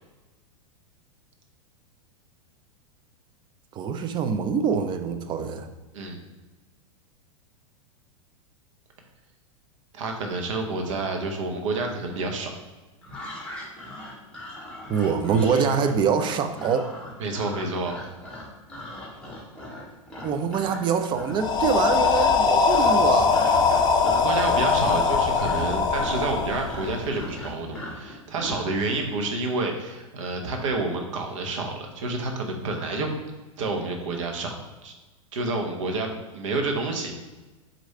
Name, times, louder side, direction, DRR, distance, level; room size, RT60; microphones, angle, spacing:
voice 1, 3.7-5.7 14.9-16.9 20.2-23.5, right 6 dB, 25° right, 8 dB, 0.4 m, -25 dB
voice 2, 9.9-12.5 17.2-18.0 24.0-33.1 33.6-34.9 35.3-37.1, right 3 dB, 65° right, 3 dB, 0.9 m, -29 dB
sound 1, 13.0-20.8 21.1-21.5 21.8-22.4 22.7-28.7, left 1 dB, 5° left, 1.4 m, -39 dB
sound 2, 21.4-27.3, left 5 dB, 25° left, 0.6 m, -21 dB
4.7 x 2.6 x 4.2 m, 1.2 s
hypercardioid pair, 100°, 17 cm